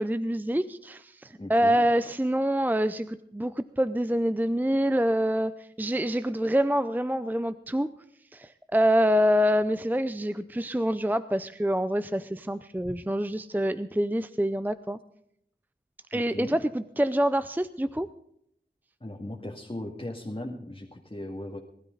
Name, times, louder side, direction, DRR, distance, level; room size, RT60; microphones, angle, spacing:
voice 1, 0.0-7.9 8.3-15.0 16.1-18.1, equal, 10° right, 13 dB, 0.5 m, -26 dB
voice 2, 1.4-1.9 16.1-16.6 19.0-21.6, left 1 dB, 30° left, -1 dB, 2.1 m, -37 dB
20.0 x 12.5 x 3.9 m, 0.71 s
wide cardioid pair, 50°, 19 cm